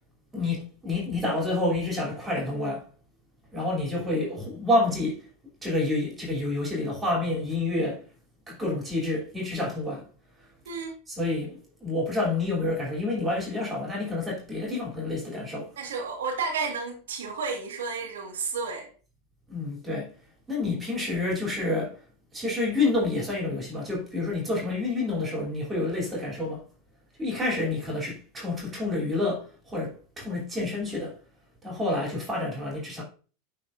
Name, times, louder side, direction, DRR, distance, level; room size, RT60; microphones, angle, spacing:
voice 1, 0.3-2.8 3.5-5.2 5.6-8.0 8.5-10.0 11.1-15.7 19.5-20.1 20.5-22.0 22.3-26.6 27.2-31.2 31.6-33.0, left 2 dB, 20° right, 3.0 m, -28 dB
voice 2, 15.8-18.9, right 5 dB, 85° right, 1.7 m, -32 dB
11.5 x 4.3 x 2.6 m
hypercardioid pair, 100°, 0 cm